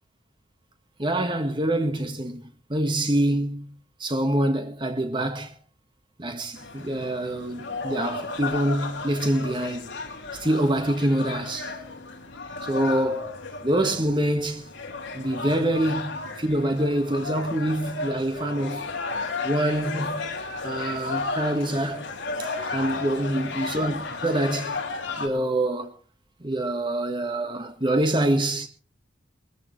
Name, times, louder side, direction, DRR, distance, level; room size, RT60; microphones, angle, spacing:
voice 1, 1.0-5.6 6.2-10.0 10.3-11.7 12.6-13.3 13.6-14.6 15.1-18.9 19.4-20.3 20.6-22.1 22.4-24.8 25.1-25.9 26.4-28.7, right 1 dB, 25° right, 1.7 m, -26 dB
sound 1, 6.6-25.3, left 3 dB, 70° left, 2.9 m, -34 dB
21.0 x 14.0 x 3.3 m
head